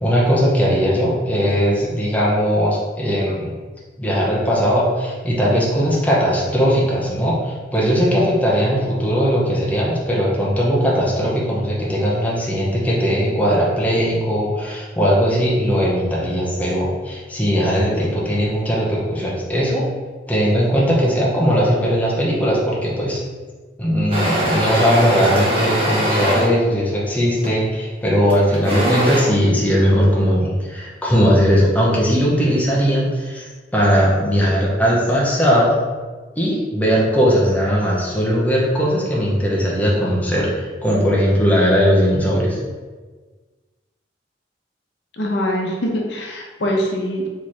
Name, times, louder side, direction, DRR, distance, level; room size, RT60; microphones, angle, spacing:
voice 1, 0.0-3.5 4.0-19.8 20.3-23.2 23.8-35.8 36.4-42.6, equal, 10° left, -5 dB, 0.8 m, -18 dB
sound 1, 24.1-26.5 27.4-27.7 28.3-29.2, equal, 30° right, 1.2 m, -21 dB
voice 2, 45.2-47.3, equal, 75° left, 0 dB, 0.7 m, -23 dB
3.5 x 3.1 x 4.3 m, 1.4 s
head